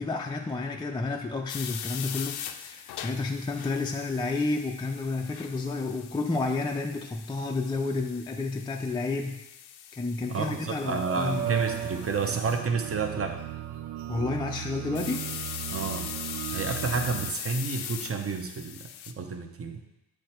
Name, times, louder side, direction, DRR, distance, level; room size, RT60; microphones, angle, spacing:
voice 1, 0.0-9.4 9.9-11.4 14.1-15.2, left 3 dB, 10° left, 2 dB, 0.4 m, -30 dB
sound 1, 1.5-12.6 14.9-19.1, left 10 dB, 75° left, 0.5 m, -41 dB
voice 2, 10.3-13.4 15.7-16.1 16.5-19.8, right 5 dB, 35° right, 5 dB, 0.8 m, -30 dB
sound 2, 10.6-17.3, right 11 dB, 85° right, 0.5 m, -36 dB
7.6 x 3.3 x 4.3 m, 0.89 s
cardioid pair, 75°, 40 cm